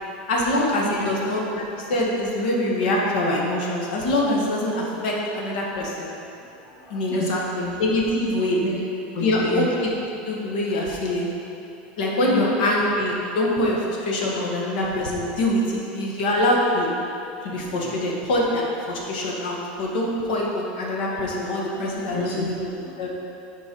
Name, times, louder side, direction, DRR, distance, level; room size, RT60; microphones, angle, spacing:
voice 1, 0.3-6.1 6.9-7.2 7.8-8.6 9.2-9.9 10.2-11.3 12.0-16.9 17.4-22.7 23.0-23.1, left 1 dB, 75° left, -2 dB, 1.5 m, -24 dB
voice 2, 6.5-7.8 8.6-8.8 9.1-9.7 12.3-12.5 17.4-18.0 21.1-21.3 21.7-23.1, left 2 dB, 45° left, -4 dB, 1.2 m, -31 dB
7.0 x 4.7 x 5.4 m, 2.8 s
supercardioid pair, 165°, 5 cm